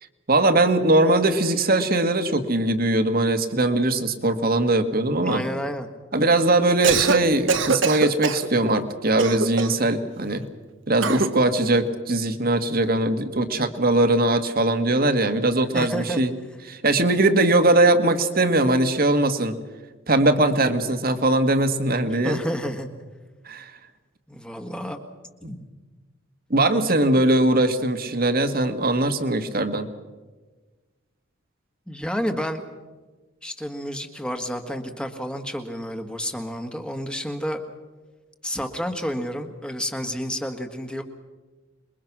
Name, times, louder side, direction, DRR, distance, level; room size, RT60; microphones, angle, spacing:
voice 1, 0.3-5.4 6.1-10.5 10.9-16.3 16.7-19.6 20.1-22.4 23.4-23.7 25.4-25.5 26.5-29.9, right 2 dB, 45° right, 9 dB, 1.7 m, -21 dB
voice 2, 5.2-5.9 15.7-16.2 22.1-22.9 24.3-25.0 25.5-25.6 31.9-32.6 33.4-37.6 38.4-41.0, equal, 5° left, 5 dB, 1.6 m, -30 dB
Cough, 6.7-7.2 7.5-8.5 9.2-9.8 11.0-11.3, right 4 dB, 65° right, 1.3 m, -22 dB
27.5 x 22.0 x 6.1 m, 1.3 s
head